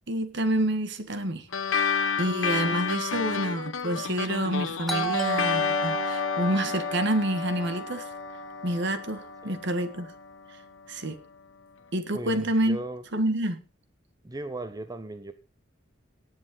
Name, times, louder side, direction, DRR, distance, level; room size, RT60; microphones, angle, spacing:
voice 1, 0.1-8.1 8.6-10.1 10.9-11.2 11.9-12.8 13.1-13.6, right 1 dB, 65° right, 9 dB, 1.9 m, -28 dB
sound 1, 1.5-10.3, left 6 dB, 80° left, 1.0 m, -31 dB
Doorbell, 4.9-9.5, right 1 dB, ahead, 2.3 m, -33 dB
voice 2, 12.1-13.0 14.2-15.3, right 2 dB, 20° right, 10 dB, 0.7 m, -37 dB
18.0 x 7.8 x 4.0 m, 0.33 s
head